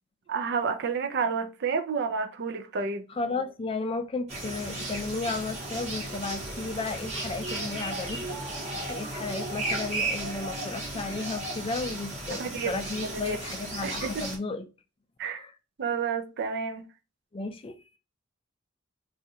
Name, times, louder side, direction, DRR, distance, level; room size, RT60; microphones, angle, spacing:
voice 1, 0.3-3.1 12.3-12.7 13.1-13.4 13.8-14.3 15.2-15.4 15.8-16.9, right 5 dB, 55° right, 0.4 m, -30 dB
voice 2, 3.2-8.3 8.9-14.7 15.2-15.5 17.3-17.8, left 3 dB, 25° left, 0.4 m, -34 dB
sound 1, 4.3-14.4, right 2 dB, 35° right, 1.0 m, -35 dB
2.6 x 2.4 x 4.1 m
head